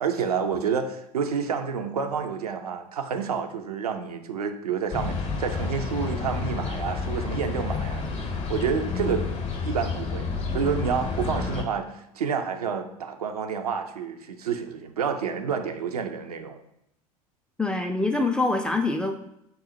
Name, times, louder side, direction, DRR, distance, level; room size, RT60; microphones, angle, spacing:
voice 1, 0.0-8.0 8.5-9.3 9.6-10.3 10.5-16.6, right 6 dB, 85° right, 6 dB, 0.4 m, -29 dB
sound 1, 4.9-11.6, left 4 dB, 35° left, 0.7 m, -30 dB
voice 2, 17.6-19.3, left 2 dB, 5° left, 5 dB, 0.3 m, -25 dB
3.8 x 2.0 x 4.2 m, 0.80 s
figure-of-eight pair, 75°, 19 cm